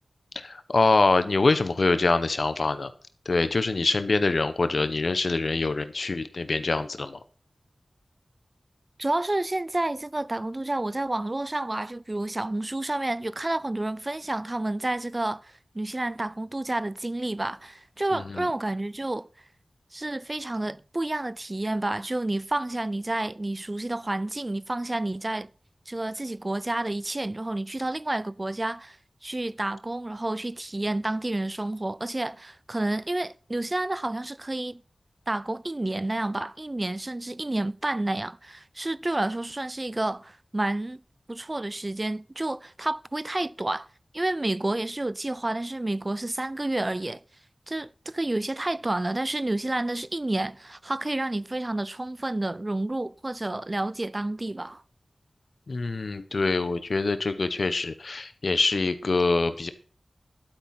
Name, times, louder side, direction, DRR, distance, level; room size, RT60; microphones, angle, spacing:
voice 1, 0.3-2.9 3.2-7.2 18.1-18.5 55.7-59.7, left 3 dB, 70° left, 1.3 m, -25 dB
voice 2, 9.0-19.3 19.9-25.5 25.9-29.0 29.2-34.8 35.3-41.0 41.3-43.9 44.1-47.2 47.7-54.8, right 2 dB, 35° right, 0.5 m, -30 dB
12.0 x 8.7 x 6.0 m
wide cardioid pair, 55°, 0 cm